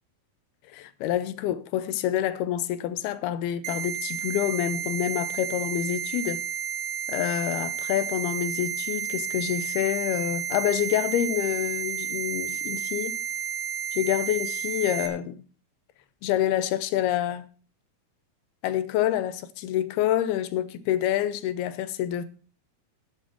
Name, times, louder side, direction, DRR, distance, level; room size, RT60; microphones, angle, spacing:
voice 1, 0.7-6.4 7.1-13.2 13.9-15.4 16.2-17.5 18.6-22.3, left 11 dB, 85° left, 2.8 m, -27 dB
sound 1, 3.6-15.1, right 9 dB, 75° right, 2.8 m, -32 dB
12.0 x 11.0 x 4.6 m
omnidirectional pair, 4.4 m